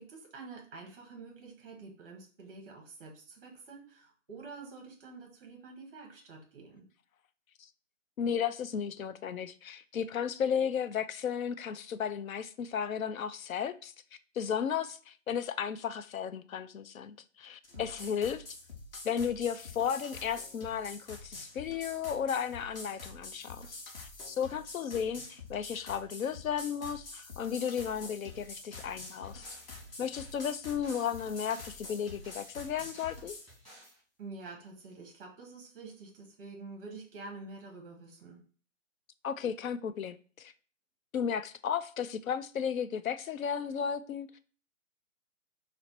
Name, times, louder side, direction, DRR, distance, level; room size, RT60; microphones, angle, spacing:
voice 1, 0.0-6.9 17.7-18.2 34.2-38.4, right 3 dB, 10° right, 0.6 m, -48 dB
voice 2, 8.2-13.9 14.4-18.4 19.0-23.8 24.3-29.5 30.0-33.4 39.2-40.5 41.1-44.4, left 7 dB, 85° left, 0.5 m, -34 dB
sound 1, 17.6-33.5, left 3 dB, 45° left, 1.0 m, -47 dB
sound 2, 28.4-34.0, equal, 10° left, 1.4 m, -56 dB
4.1 x 2.1 x 4.3 m
hypercardioid pair, 155°, 40 cm